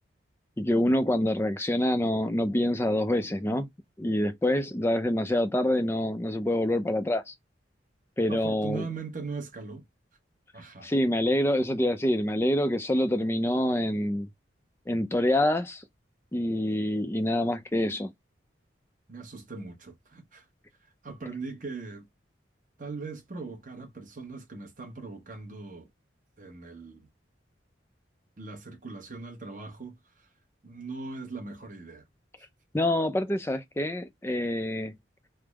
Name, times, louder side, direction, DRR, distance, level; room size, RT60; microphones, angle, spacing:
voice 1, 0.6-3.7 4.0-7.3 8.2-8.9 10.8-14.3 14.9-15.8 16.3-18.1 32.7-34.9, left 1 dB, 15° left, 0.4 m, -26 dB
voice 2, 8.3-9.8 10.5-10.9 19.1-20.5 21.0-22.1 22.8-25.9 26.4-27.1 28.4-30.3 30.6-32.0 32.4-32.5, right 4 dB, 45° right, 0.9 m, -40 dB
3.4 x 2.0 x 3.3 m
head